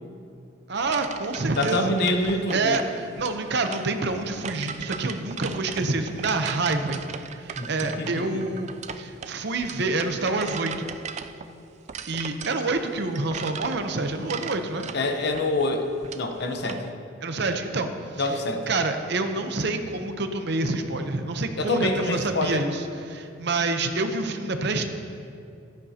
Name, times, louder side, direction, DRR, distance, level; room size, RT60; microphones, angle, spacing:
voice 1, 0.7-1.9 2.5-7.1 7.4-8.7 9.0-10.9 12.1-14.9 17.2-18.4 18.7-24.9, right 3 dB, 60° right, 6 dB, 0.8 m, -27 dB
sound 1, 0.8-16.9, right 6 dB, 35° right, 0.3 m, -38 dB
voice 2, 1.6-2.8 7.6-8.4 14.9-15.9 16.1-16.9 18.2-18.7 21.6-22.6, left 2 dB, 55° left, 4 dB, 0.9 m, -26 dB
14.5 x 11.5 x 2.8 m, 2.5 s
head